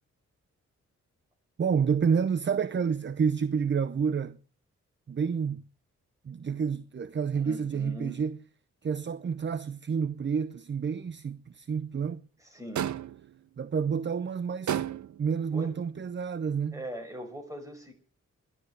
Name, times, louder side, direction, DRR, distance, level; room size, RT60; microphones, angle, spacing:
voice 1, 1.6-4.4 5.1-5.6 6.2-8.4 8.8-12.2 13.6-14.8 15.2-16.8, right 6 dB, 40° right, 0.7 m, -29 dB
voice 2, 7.4-8.2 12.4-12.9 15.5-15.8 16.7-17.9, equal, 10° right, 5.5 m, -41 dB
sound 1, 12.8-13.3 14.7-15.3, right 10 dB, 75° right, 0.8 m, -31 dB
12.5 x 11.5 x 8.0 m
wide cardioid pair, 105°, 29 cm